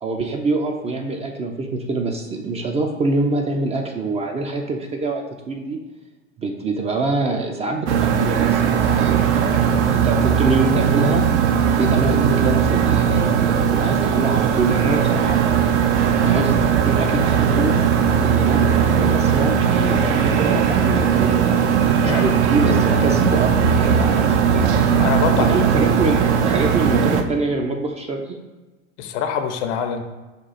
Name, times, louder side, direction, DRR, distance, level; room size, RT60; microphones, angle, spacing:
voice 1, 0.0-5.8 6.4-9.6 9.9-11.2 11.8-15.4 16.2-16.6 16.8-17.7 18.3-25.0 25.4-28.4, right 3 dB, 20° right, 3 dB, 0.3 m, -25 dB
sound 1, 7.9-27.2, right 7 dB, 70° right, 0.6 m, -18 dB
voice 2, 22.0-22.3 23.0-23.2 25.0-25.9 29.0-30.0, left 7 dB, 70° left, 6 dB, 0.7 m, -25 dB
5.2 x 2.3 x 4.0 m, 1.2 s
hypercardioid pair, 95°, 36 cm